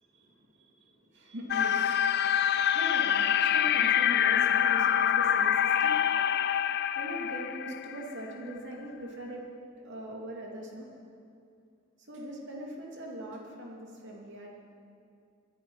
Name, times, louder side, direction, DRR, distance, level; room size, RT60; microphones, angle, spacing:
voice 1, 0.1-1.9 2.3-6.1 6.9-9.5 9.8-10.9 12.1-14.5, equal, 55° right, -2 dB, 2.8 m, -41 dB
sound 1, 1.5-8.3, left 9 dB, 50° left, 0.4 m, -26 dB
23.0 x 10.5 x 5.7 m, 2.4 s
head